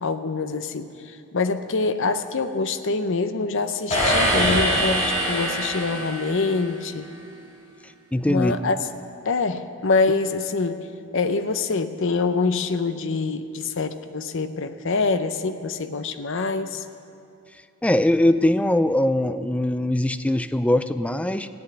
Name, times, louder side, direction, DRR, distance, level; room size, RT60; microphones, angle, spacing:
voice 1, 0.0-7.1 8.3-8.8 9.2-10.8 11.1-16.8, left 4 dB, 60° left, 10 dB, 0.7 m, -25 dB
sound 1, 3.9-6.7, equal, 30° left, 3.9 m, -23 dB
voice 2, 8.1-8.5 17.8-21.5, left 1 dB, 5° left, 12 dB, 0.3 m, -21 dB
15.5 x 8.0 x 9.7 m, 2.5 s
head